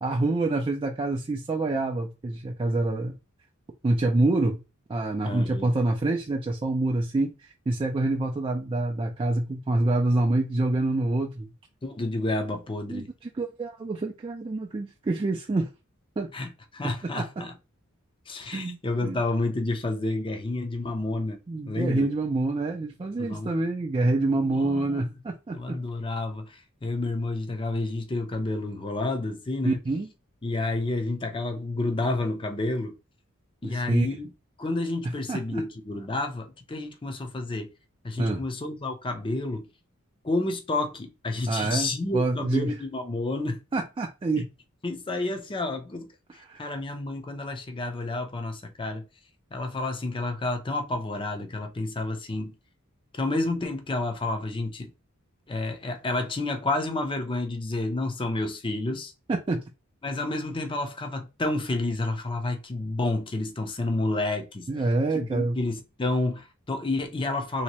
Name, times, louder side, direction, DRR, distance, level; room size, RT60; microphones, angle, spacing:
voice 1, 0.0-3.1 3.8-4.6 4.9-11.5 12.9-15.7 16.2-16.3 17.2-17.3 18.5-19.2 21.5-25.8 29.6-30.1 33.6-34.1 35.3-35.6 38.2-38.4 41.5-42.8 43.7-44.5 46.4-46.6 59.3-59.6 64.7-65.6, right 2 dB, 25° right, 0.3 m, -26 dB
voice 2, 5.2-5.7 11.8-13.1 16.3-17.5 18.3-21.4 21.7-22.1 23.2-23.5 24.3-25.1 25.5-29.8 30.4-32.9 33.6-34.3 34.6-37.7 38.0-39.7 40.2-43.6 44.8-49.1 49.5-52.6 53.1-54.9 55.5-59.1 60.0-64.7 65.1-67.6, left 2 dB, 25° left, 0.6 m, -30 dB
3.1 x 2.8 x 2.9 m
head